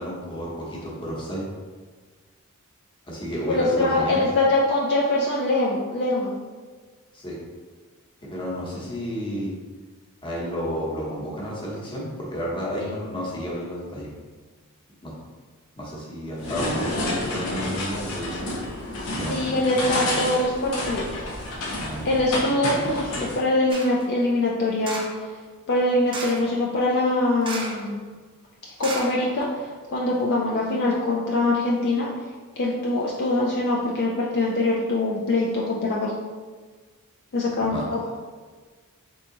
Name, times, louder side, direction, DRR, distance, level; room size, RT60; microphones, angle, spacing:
voice 1, 0.0-1.4 3.1-4.2 7.1-7.4 8.2-9.5 10.2-14.1 15.0-15.1 15.8-18.5 19.1-19.9 21.8-22.1 37.7-37.8, equal, 20° left, -5 dB, 1.0 m, -31 dB
voice 2, 3.5-6.3 19.3-21.3 21.7-25.3 25.7-28.0 28.8-32.1 32.6-36.1 37.3-38.0, left 2 dB, 50° left, -4 dB, 0.5 m, -23 dB
sound 1, 16.4-23.4, left 1 dB, 90° left, 0.9 m, -29 dB
sound 2, 23.7-24.1 24.8-25.2 26.1-26.5 27.4-27.9 28.2-28.3 28.8-29.7 30.1-30.2, right 2 dB, 25° right, 0.5 m, -34 dB
3.7 x 2.8 x 3.8 m, 1.4 s
head